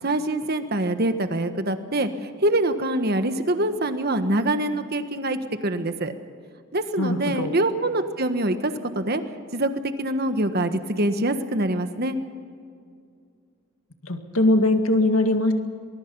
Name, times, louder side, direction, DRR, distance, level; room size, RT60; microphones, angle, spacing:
voice 1, 0.0-6.1 6.7-9.2 9.5-12.2, right 1 dB, 50° right, 8 dB, 1.4 m, -25 dB
voice 2, 7.0-7.5 14.0-15.5, left 2 dB, 85° left, 6 dB, 2.0 m, -21 dB
23.5 x 21.5 x 5.5 m, 2.3 s
head